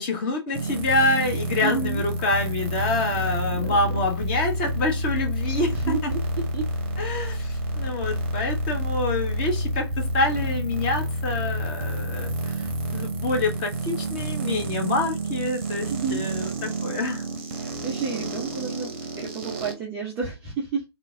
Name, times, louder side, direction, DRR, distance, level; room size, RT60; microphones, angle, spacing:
voice 1, 0.0-6.1 7.0-17.2, left 2 dB, 20° left, 0.7 m, -27 dB
sound 1, 0.5-19.7, right 1 dB, 30° right, 0.7 m, -29 dB
voice 2, 1.6-2.0 3.5-3.8 5.7-6.7 15.9-16.3 17.6-20.8, right 5 dB, 10° right, 0.3 m, -31 dB
3.2 x 2.4 x 3.4 m
figure-of-eight pair, 140°, 14 cm